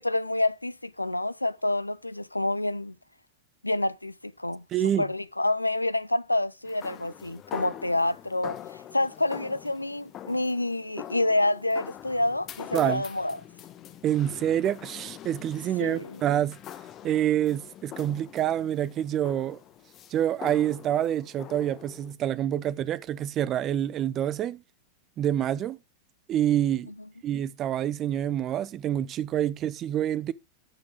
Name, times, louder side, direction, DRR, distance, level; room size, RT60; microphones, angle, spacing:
voice 1, 0.0-2.9 3.6-4.6 5.0-8.6 8.9-13.4 15.8-16.2, left 2 dB, 85° left, 0.4 m, -28 dB
voice 2, 4.7-5.1 12.7-13.0 14.0-16.6 17.0-19.6 20.1-24.6 25.2-25.8 26.3-26.9 27.2-30.3, right 11 dB, 30° right, 0.6 m, -27 dB
sound 1, 6.7-22.1, left 11 dB, 30° left, 1.3 m, -44 dB
13.5 x 6.1 x 3.7 m
figure-of-eight pair, 90°, 0 cm